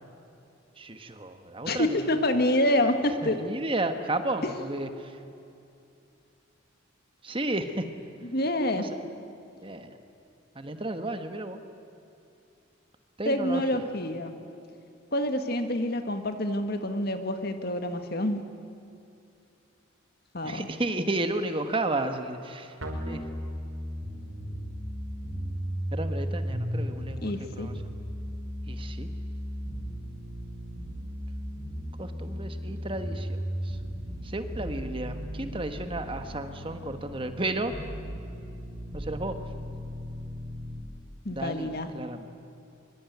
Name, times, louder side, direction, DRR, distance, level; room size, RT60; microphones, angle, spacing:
voice 1, 0.8-2.2 3.2-5.2 7.2-7.8 8.7-8.9 9.6-10.0 10.5-11.6 13.2-13.8 20.4-22.8 23.1-23.2 25.9-27.8 28.7-29.1 32.0-33.8 34.2-37.7 38.9-39.3 41.3-42.3, right 2 dB, 25° right, 8 dB, 1.4 m, -33 dB
voice 2, 1.6-3.4 8.3-8.8 13.3-14.3 15.1-18.4 20.3-20.7 27.2-27.7 41.3-41.9, left 1 dB, 50° left, 7 dB, 1.8 m, -27 dB
sound 1, 22.8-40.8, equal, 90° right, 5.4 m, -36 dB
24.5 x 24.0 x 9.4 m, 2.6 s
head